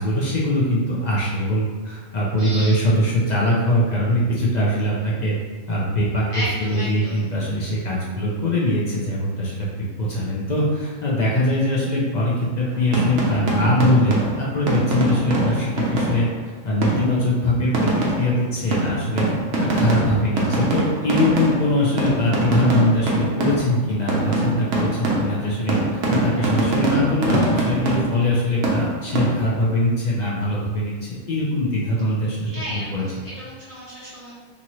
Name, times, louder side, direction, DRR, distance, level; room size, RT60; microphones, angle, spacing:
voice 1, 0.0-5.3 5.7-16.3 16.6-17.9 18.2-19.3 19.6-33.0, left 1 dB, 60° left, -5 dB, 0.4 m, -22 dB
voice 2, 2.4-2.8 6.3-7.2 32.4-34.3, equal, 25° left, -10 dB, 1.0 m, -33 dB
sound 1, 12.7-16.4 16.8-17.2 17.7-23.8 24.1-28.4 28.6-29.6, right 2 dB, 70° right, 0.9 m, -23 dB
2.8 x 2.6 x 2.9 m, 1.4 s
omnidirectional pair, 1.3 m